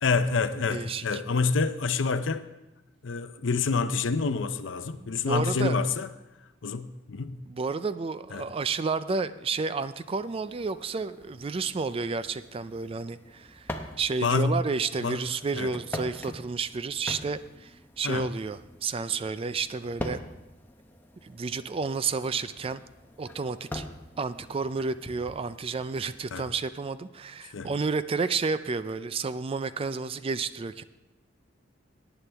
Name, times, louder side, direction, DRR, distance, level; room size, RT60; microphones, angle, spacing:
voice 1, 0.0-2.4 3.0-6.1 6.6-7.4 8.3-8.5 14.2-14.6 15.0-15.2 15.5-15.7 18.0-18.3 26.3-26.5 27.5-27.7, left 4 dB, 75° left, 0.6 m, -27 dB
voice 2, 0.7-1.2 5.0-5.8 7.5-20.2 21.2-22.8 23.2-23.8 24.2-30.8, right 4 dB, 30° right, 0.3 m, -31 dB
sound 1, 10.0-26.5, left 1 dB, 10° left, 0.8 m, -44 dB
17.5 x 9.1 x 3.4 m
head